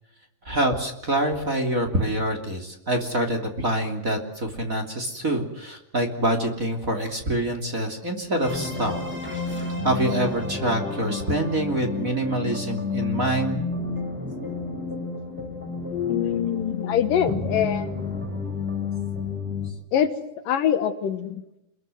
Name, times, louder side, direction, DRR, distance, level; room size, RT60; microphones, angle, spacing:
voice 1, 0.4-9.0 9.8-13.6, right 1 dB, 25° right, 4 dB, 3.0 m, -26 dB
sound 1, 8.4-19.7, left 4 dB, 5° right, 5.3 m, -30 dB
voice 2, 15.9-18.0 19.9-20.1 20.5-21.4, left 9 dB, 70° left, 10 dB, 2.8 m, -24 dB
28.5 x 21.5 x 7.8 m, 0.87 s
omnidirectional pair, 4.3 m